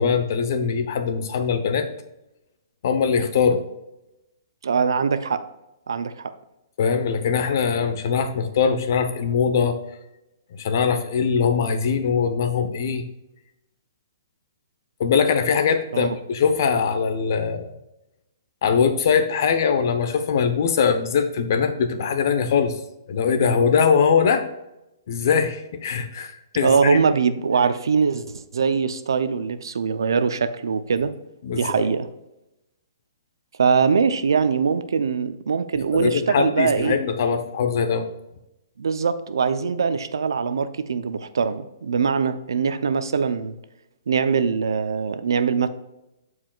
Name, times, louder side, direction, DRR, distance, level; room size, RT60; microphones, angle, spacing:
voice 1, 0.0-1.9 2.8-3.6 6.8-9.8 10.6-13.0 15.0-17.8 18.6-22.7 23.1-24.5 25.1-27.0 31.4-31.8 35.9-38.1, left 6 dB, 55° left, 9 dB, 0.9 m, -21 dB
voice 2, 4.6-5.4 5.9-6.3 15.9-16.2 26.6-31.1 31.5-32.1 33.6-37.0 38.8-43.6 44.1-45.7, right 5 dB, 90° right, 12 dB, 0.6 m, -22 dB
13.5 x 4.8 x 2.4 m, 0.92 s
hypercardioid pair, 160°, 2 cm